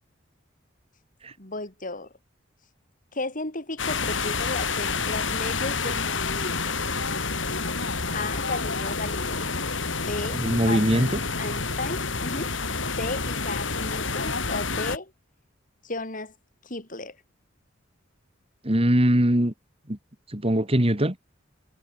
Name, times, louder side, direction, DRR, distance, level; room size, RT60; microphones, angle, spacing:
voice 1, 1.4-2.1 3.1-6.8 8.1-9.6 10.0-11.1 11.4-12.5 13.0-15.1 15.8-16.3 16.6-17.2, left 2 dB, 45° left, 4.8 m, -34 dB
sound 1, 3.8-15.0, left 4 dB, 75° left, 6.0 m, -28 dB
voice 2, 10.4-11.2 18.6-19.5 19.9-20.0 20.3-21.1, right 1 dB, 30° right, 2.7 m, -21 dB
head